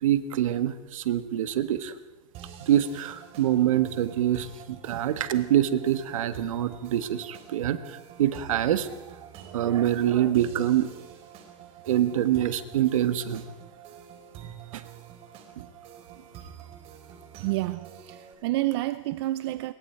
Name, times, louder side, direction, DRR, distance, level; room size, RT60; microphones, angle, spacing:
voice 1, 0.0-1.9 2.6-8.9 9.5-10.9 11.9-13.4 14.7-14.8, right 11 dB, 75° right, 1.6 m, -25 dB
sound 1, 2.3-18.3, right 8 dB, 35° right, 4.1 m, -47 dB
voice 2, 17.4-19.7, right 17 dB, 50° right, 0.6 m, -29 dB
27.0 x 22.5 x 4.6 m
supercardioid pair, 145°, 17 cm